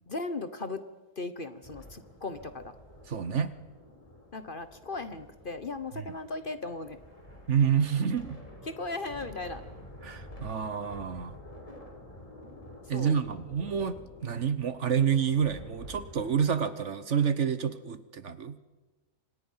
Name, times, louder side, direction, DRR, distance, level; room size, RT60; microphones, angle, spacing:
voice 1, 0.1-0.8 1.2-2.7 4.3-7.0 8.7-9.6 12.9-13.2, left 3 dB, 40° left, 11 dB, 1.1 m, -37 dB
sound 1, 1.6-16.7, left 1 dB, 20° left, 4.0 m, -49 dB
voice 2, 3.1-3.5 6.0-6.1 7.5-8.4 10.0-11.3 12.9-18.6, right 7 dB, 55° right, 13 dB, 1.2 m, -28 dB
29.5 x 26.0 x 5.7 m, 1.2 s
omnidirectional pair, 1.6 m